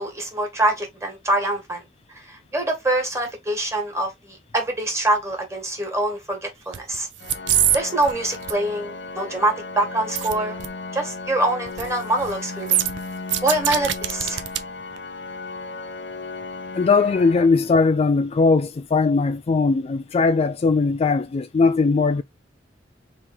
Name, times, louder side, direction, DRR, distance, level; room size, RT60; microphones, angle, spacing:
voice 1, 0.0-1.8 2.1-7.1 7.7-10.6 10.9-12.8 13.4-14.4, right 1 dB, 15° right, 1.6 m, -24 dB
sound 1, 6.7-7.0 7.2-7.8 8.0-8.5 10.2-10.3 10.6-10.7 11.7-11.9 12.2-12.3 12.7-14.6 15.0-15.1, right 11 dB, 80° right, 0.6 m, -23 dB
Organ, 7.2-18.2, left 3 dB, 65° left, 0.7 m, -35 dB
voice 2, 16.7-22.2, left 4 dB, 35° left, 0.3 m, -19 dB
3.6 x 3.1 x 4.2 m
head